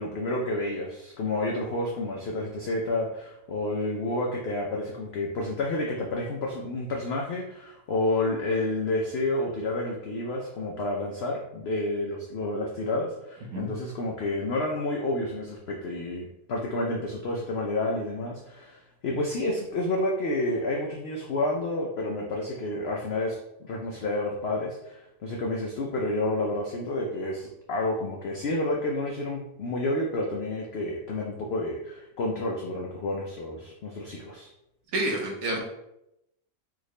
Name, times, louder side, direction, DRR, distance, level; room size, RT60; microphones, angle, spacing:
voice 1, 0.0-34.5, left 2 dB, 90° left, -1 dB, 0.5 m, -30 dB
voice 2, 34.9-35.6, right 2 dB, 70° right, -1 dB, 1.2 m, -28 dB
3.7 x 2.5 x 3.0 m, 0.84 s
omnidirectional pair, 1.7 m